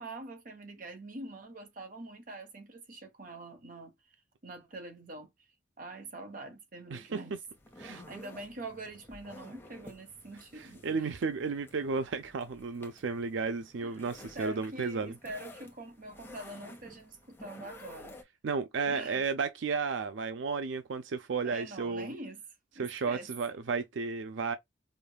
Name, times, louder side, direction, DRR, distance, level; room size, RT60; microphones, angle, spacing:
voice 1, 0.0-3.9 4.4-5.3 5.8-7.4 7.8-11.2 13.8-13.9 14.3-18.2 18.9-19.2 21.4-22.4 22.7-23.3, right 2 dB, 45° right, 1.2 m, -44 dB
sound 1, 7.5-18.2, left 1 dB, 10° left, 0.9 m, -52 dB
voice 2, 10.8-15.1 18.4-22.1 22.8-24.6, right 5 dB, 85° right, 0.5 m, -33 dB
5.1 x 2.3 x 2.2 m
head